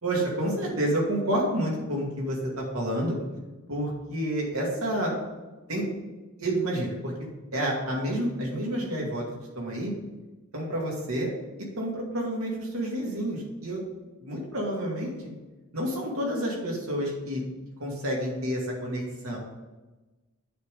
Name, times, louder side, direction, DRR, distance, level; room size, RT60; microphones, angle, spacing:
voice 1, 0.0-3.2 3.7-5.1 5.7-5.9 6.4-7.1 7.5-9.2 9.6-9.9 10.5-11.3 11.8-13.8 14.2-15.2 15.7-17.4 17.8-19.4, right 1 dB, 75° right, -3 dB, 2.4 m, -29 dB
8.4 x 3.8 x 6.8 m, 1.1 s
head